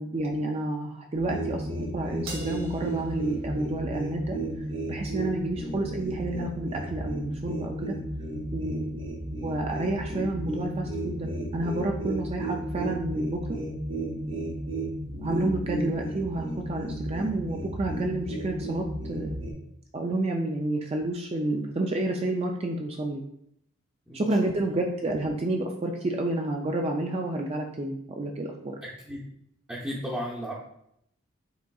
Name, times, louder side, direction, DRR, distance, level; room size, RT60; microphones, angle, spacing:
voice 1, 0.0-4.4 4.9-8.0 8.5-9.0 9.4-13.6 14.4-14.5 15.2-19.4 19.9-23.2 24.1-28.8, right 2 dB, 30° right, 2 dB, 0.3 m, -30 dB
sound 1, 1.1-19.5, right 1 dB, 65° right, 1.1 m, -33 dB
Crash cymbal, 2.3-4.8, right 3 dB, 85° right, 1.2 m, -45 dB
voice 2, 24.1-24.9 28.8-29.3 29.7-30.5, equal, 5° right, -8 dB, 0.7 m, -36 dB
5.9 x 3.7 x 2.3 m, 0.74 s
head